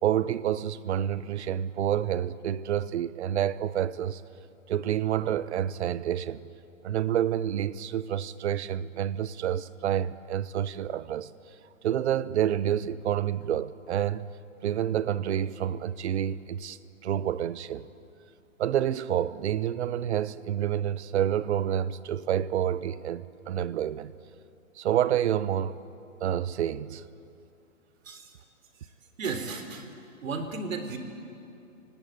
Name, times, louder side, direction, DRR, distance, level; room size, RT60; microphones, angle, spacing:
voice 1, 0.0-4.2 4.7-6.4 6.8-11.3 11.8-14.3 14.6-17.9 18.6-24.1 24.8-25.8 26.2-27.0, right 10 dB, 50° right, 1.0 m, -28 dB
voice 2, 29.2-29.9 30.2-31.0, right 4 dB, 65° right, 3.8 m, -34 dB
29.0 x 18.0 x 9.1 m
hypercardioid pair, 145°, 42 cm